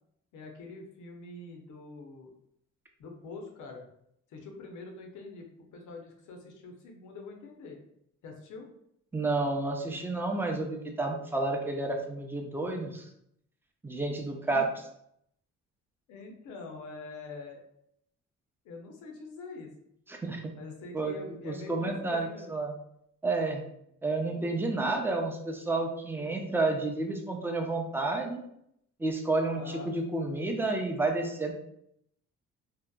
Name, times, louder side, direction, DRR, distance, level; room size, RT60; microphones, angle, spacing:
voice 1, 0.3-2.3 3.0-3.9 4.3-7.8 8.2-8.7 14.5-14.6 16.1-17.7 18.6-19.7 20.6-22.5 29.5-29.9, left 3 dB, 80° left, 2 dB, 0.6 m, -45 dB
voice 2, 9.1-13.1 13.8-14.7 20.1-20.5 20.9-21.2 21.4-22.7 23.2-23.6 24.0-28.4 29.0-31.5, right 2 dB, 10° right, 2 dB, 0.4 m, -30 dB
2.7 x 2.1 x 2.2 m, 0.74 s
cardioid pair, 90°, 30 cm